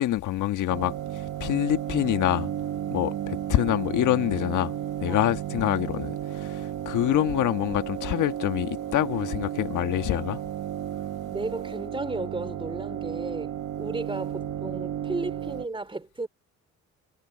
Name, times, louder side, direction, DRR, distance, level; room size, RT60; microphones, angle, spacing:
voice 1, 0.0-2.5 2.9-4.8 5.0-10.4, left 13 dB, 80° left, 1.5 m, -26 dB
sound 1, 0.7-15.7, right 11 dB, 65° right, 1.5 m, -33 dB
voice 2, 11.3-16.3, right 2 dB, 15° right, 3.7 m, -34 dB
cardioid pair, 90°, 30 cm